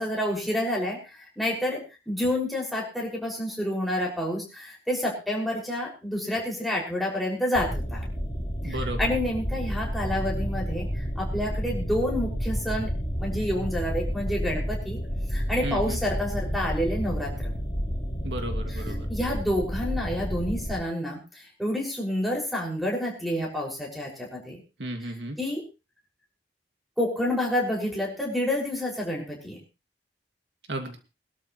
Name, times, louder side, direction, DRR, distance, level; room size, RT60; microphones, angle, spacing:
voice 1, 0.0-8.0 8.6-12.9 13.2-15.0 15.3-17.5 18.7-18.8 19.1-24.6 25.0-25.1 25.4-25.6 27.0-29.6, left 1 dB, ahead, -3 dB, 6.1 m, -29 dB
sound 1, 7.5-20.8, equal, 25° left, 4.1 m, -30 dB
voice 2, 8.6-9.1 15.6-16.0 18.2-19.1 24.8-25.4 30.7-31.0, right 1 dB, 80° right, 5 dB, 2.4 m, -33 dB
23.0 x 12.5 x 3.2 m, 0.31 s
head